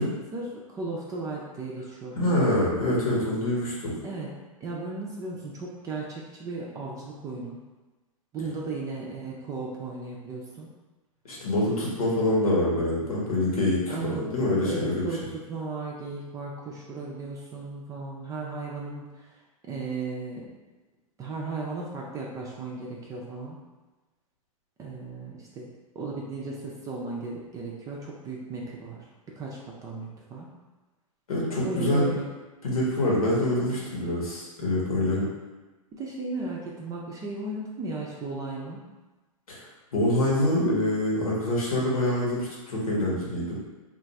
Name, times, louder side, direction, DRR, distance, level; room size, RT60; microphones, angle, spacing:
voice 1, 0.0-2.4 4.0-4.3 4.6-7.6 8.3-10.7 13.9-14.2 14.6-20.5 21.2-23.6 24.8-25.7 25.9-29.1 29.4-30.5 31.6-32.3 34.6-34.8 36.0-38.8, right 3 dB, 20° right, -3 dB, 0.4 m, -36 dB
voice 2, 2.2-3.9 11.2-15.0 31.3-32.1 32.6-35.2 39.5-39.6 39.9-43.6, left 1 dB, 85° left, -5 dB, 1.1 m, -25 dB
2.5 x 2.3 x 4.0 m, 1.2 s
hypercardioid pair, 125°, 18 cm